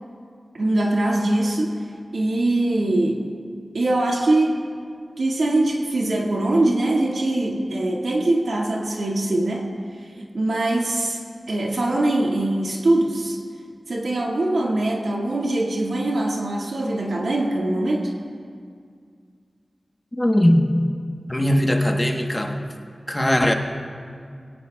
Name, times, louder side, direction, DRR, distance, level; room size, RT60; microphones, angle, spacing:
voice 1, 0.5-1.8 2.1-3.2 3.7-4.7 5.2-9.7 10.2-11.2 11.5-13.4 13.9-18.1, right 2 dB, 90° right, -1 dB, 2.0 m, -22 dB
voice 2, 20.1-20.8 21.3-22.6 23.1-23.5, left 1 dB, 15° left, 3 dB, 1.2 m, -19 dB
21.0 x 17.5 x 2.4 m, 2.2 s
wide cardioid pair, 65°, 0 cm